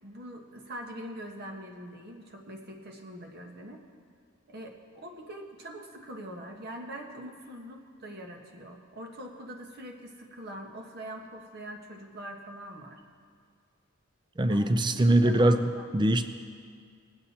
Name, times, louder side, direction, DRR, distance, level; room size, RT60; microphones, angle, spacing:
voice 1, 0.0-3.8 4.5-13.0 14.5-16.1, right 1 dB, 50° right, 2 dB, 1.4 m, -43 dB
voice 2, 14.4-15.7 15.9-16.3, right 1 dB, 20° right, 9 dB, 0.5 m, -22 dB
20.5 x 7.9 x 4.3 m, 2.1 s
head